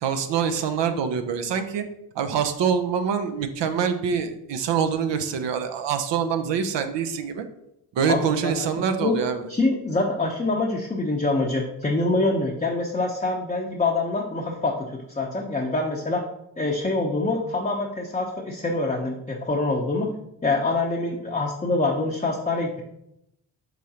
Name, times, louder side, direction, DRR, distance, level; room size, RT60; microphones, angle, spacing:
voice 1, 0.0-1.8 2.1-7.4 7.9-9.5, right 7 dB, 60° right, 8 dB, 0.7 m, -25 dB
voice 2, 8.0-8.7 9.0-9.2 9.5-16.2 16.6-20.1 20.4-22.8, left 2 dB, 15° left, -1 dB, 0.7 m, -25 dB
4.8 x 3.7 x 2.8 m, 0.80 s
hypercardioid pair, 45°, 50 cm